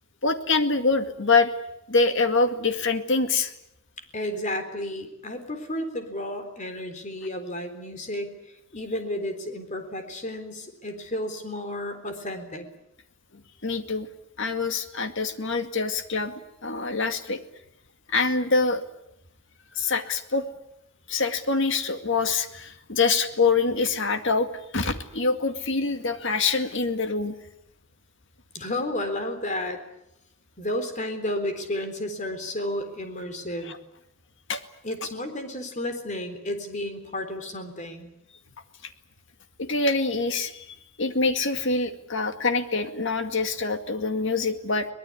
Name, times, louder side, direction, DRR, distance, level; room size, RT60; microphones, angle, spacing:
voice 1, 0.2-1.5 1.9-3.5 13.6-14.1 14.4-16.3 16.6-17.4 18.1-18.8 19.7-20.5 21.1-27.3 33.7-33.8 34.5-34.6 39.6-44.9, left 4 dB, 55° left, 8 dB, 2.1 m, -25 dB
voice 2, 4.0-12.7 28.5-29.8 30.6-33.8 34.8-38.1, left 1 dB, 35° left, 8 dB, 3.9 m, -32 dB
23.5 x 19.5 x 9.8 m, 0.83 s
head